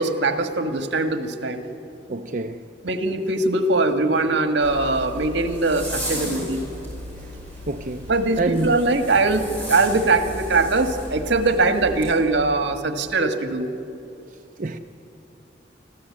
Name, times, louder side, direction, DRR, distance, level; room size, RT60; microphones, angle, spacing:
voice 1, 0.0-1.6 2.8-6.6 8.1-13.7, right 3 dB, 80° right, 1.6 m, -21 dB
voice 2, 2.1-2.6 7.7-8.1 8.4-8.8 14.6-14.8, right 2 dB, 45° right, 0.6 m, -26 dB
Zipper (clothing), 4.6-12.1, equal, 10° left, 5.7 m, -34 dB
25.5 x 14.5 x 8.6 m
head